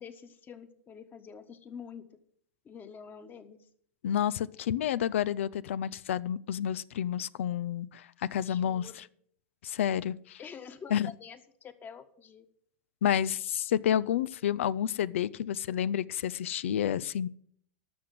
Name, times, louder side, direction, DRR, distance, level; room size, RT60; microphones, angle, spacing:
voice 1, 0.0-2.0 2.6-3.7 8.5-9.1 10.4-12.4, left 6 dB, 30° left, 1.4 m, -47 dB
voice 2, 4.0-9.0 9.6-10.4 10.9-11.1 13.0-17.3, left 10 dB, 75° left, 0.4 m, -30 dB
12.5 x 6.2 x 7.6 m
hypercardioid pair, 100°, 7 cm